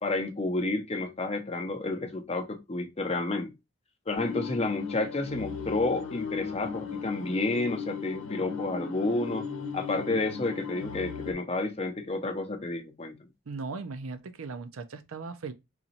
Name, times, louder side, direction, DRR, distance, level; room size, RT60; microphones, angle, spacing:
voice 1, 0.0-3.5 4.1-9.5 9.7-13.3, left 2 dB, 30° left, 0.6 m, -30 dB
sound 1, 4.1-11.3, left 5 dB, 70° left, 0.8 m, -37 dB
voice 2, 13.5-15.5, right 4 dB, 80° right, 0.5 m, -38 dB
4.0 x 3.0 x 2.8 m
head